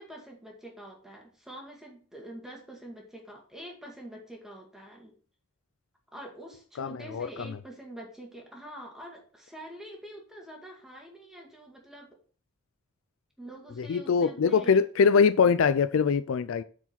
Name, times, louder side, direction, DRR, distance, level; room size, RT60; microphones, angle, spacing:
voice 1, 0.0-5.1 6.1-12.2 13.4-14.8, right 1 dB, ahead, 2.0 m, -46 dB
voice 2, 6.8-7.3 13.8-16.6, left 6 dB, 60° left, 0.4 m, -23 dB
7.9 x 4.8 x 5.7 m
head